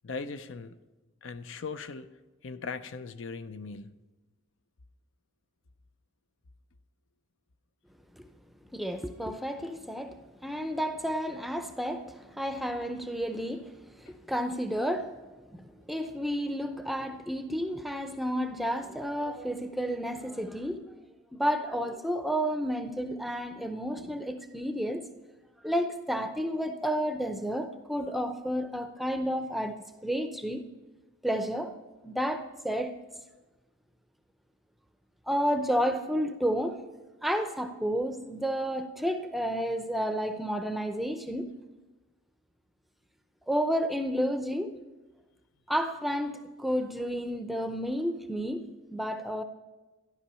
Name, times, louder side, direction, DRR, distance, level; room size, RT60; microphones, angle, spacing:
voice 1, 0.0-0.8 1.2-2.1 2.4-4.0, left 4 dB, 60° left, 0.5 m, -39 dB
voice 2, 8.7-15.1 15.5-20.8 21.3-25.1 25.6-30.6 31.2-31.8 32.0-33.0 35.3-36.8 37.2-41.5 43.5-44.8 45.7-49.4, equal, ahead, 0.6 m, -31 dB
13.0 x 11.5 x 5.5 m
head